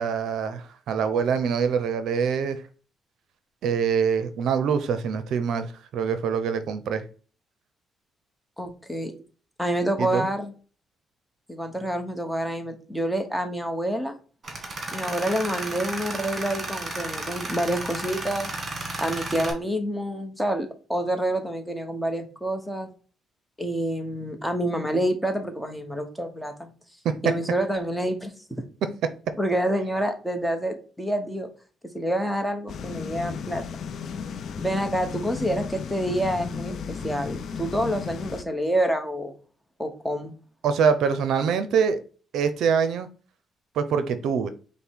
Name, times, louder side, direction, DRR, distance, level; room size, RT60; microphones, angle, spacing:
voice 1, 0.0-2.6 3.6-7.0 10.0-10.3 27.0-27.2 40.6-42.0 42.3-43.1 43.8-44.5, right 6 dB, 75° right, 0.5 m, -24 dB
voice 2, 8.6-9.1 9.6-10.5 11.5-14.2 14.9-18.5 19.0-22.9 23.6-26.7 27.2-28.3 29.4-31.5 31.9-33.6 34.6-39.3 39.8-40.3, right 1 dB, 5° left, 1.0 m, -27 dB
Tools, 14.4-19.5, right 2 dB, 40° right, 1.4 m, -33 dB
sound 1, 32.7-38.4, left 6 dB, 65° left, 0.5 m, -34 dB
5.2 x 2.1 x 4.5 m
cardioid pair, 90°, 0 cm